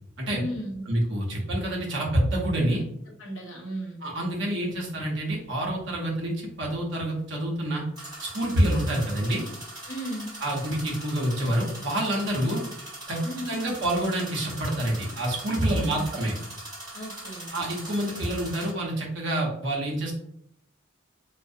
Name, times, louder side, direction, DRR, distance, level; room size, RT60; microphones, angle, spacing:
voice 1, 0.3-0.8 3.1-4.0 9.9-10.3 13.2-13.6 15.7-16.1 16.9-17.5, equal, 70° left, -1 dB, 0.7 m, -35 dB
voice 2, 0.9-2.8 4.0-7.8 8.2-9.4 10.4-12.6 13.1-13.2 13.5-16.3 17.5-20.1, right 1 dB, 65° right, -2 dB, 0.7 m, -27 dB
sound 1, 4.2-4.3 8.0-18.7, right 1 dB, 20° right, 1.3 m, -41 dB
2.4 x 2.0 x 2.6 m, 0.72 s
head